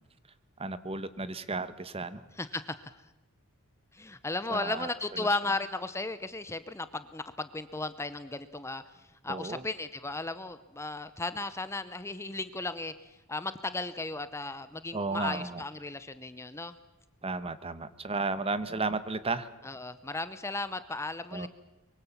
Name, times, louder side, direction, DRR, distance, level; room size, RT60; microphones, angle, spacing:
voice 1, 0.6-2.2 4.5-4.9 5.2-5.3 9.3-9.6 14.9-15.6 17.2-19.5 21.3-21.5, right 3 dB, 25° right, 14 dB, 1.1 m, -33 dB
voice 2, 2.4-3.0 3.9-16.8 19.6-21.5, left 2 dB, 10° left, 13 dB, 0.7 m, -35 dB
24.0 x 23.0 x 7.2 m, 1.0 s
head